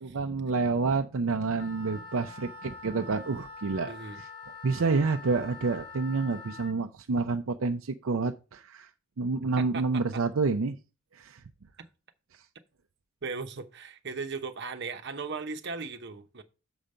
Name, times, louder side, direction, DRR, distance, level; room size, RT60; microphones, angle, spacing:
voice 1, 0.0-3.9 4.2-4.3 4.6-8.9 9.2-10.8 11.1-11.4, right 4 dB, 75° right, 0.5 m, -28 dB
Wind instrument woodwind instrument, 1.5-6.7, left 3 dB, 25° left, 2.6 m, -45 dB
voice 2, 3.8-4.2 9.6-10.2 13.2-16.4, right 4 dB, 55° right, 0.9 m, -37 dB
7.1 x 5.1 x 5.4 m
head